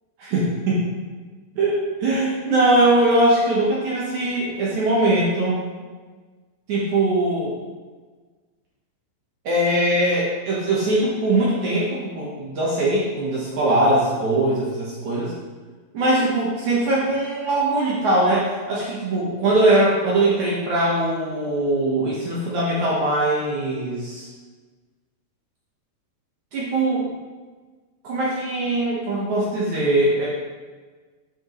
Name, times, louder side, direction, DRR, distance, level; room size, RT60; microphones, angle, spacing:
voice 1, 0.2-0.8 1.6-5.6 6.7-7.6 9.4-15.3 15.9-24.3 26.5-27.1 28.0-30.3, right 1 dB, 65° right, -6 dB, 1.9 m, -21 dB
9.0 x 7.4 x 3.1 m, 1.4 s
omnidirectional pair, 5.0 m